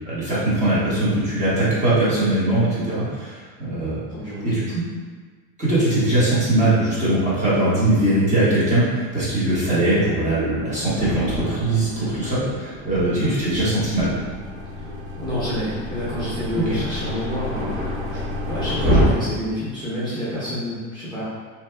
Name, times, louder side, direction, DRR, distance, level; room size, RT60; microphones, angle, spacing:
voice 1, 0.1-3.3 3.6-4.0 4.4-4.8 5.6-14.1 16.7-16.8, right 1 dB, 20° right, -10 dB, 1.0 m, -21 dB
voice 2, 4.1-4.6 13.0-13.2 14.7-14.9 15.2-18.2 18.5-21.2, equal, 10° left, -13 dB, 0.7 m, -29 dB
Thunder, 10.4-19.1, equal, 45° right, 1.0 m, -28 dB
sound 1, 13.6-18.9, left 2 dB, 90° right, 0.9 m, -33 dB
2.7 x 2.2 x 3.2 m, 1.5 s
cardioid pair, 150°, 38 cm